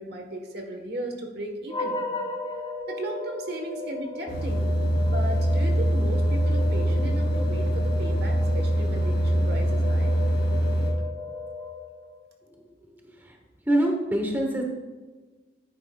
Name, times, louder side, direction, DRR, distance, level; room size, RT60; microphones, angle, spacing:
voice 1, 0.0-2.0 2.9-10.1, right 1 dB, 55° right, 3 dB, 1.3 m, -36 dB
sound 1, 1.7-12.2, left 3 dB, 25° left, 1.7 m, -36 dB
sound 2, 4.3-10.9, right 1 dB, 65° left, 2.9 m, -23 dB
voice 2, 12.9-13.4 13.7-14.6, right 1 dB, 10° right, 1 dB, 1.0 m, -25 dB
10.5 x 9.1 x 2.3 m, 1.3 s
head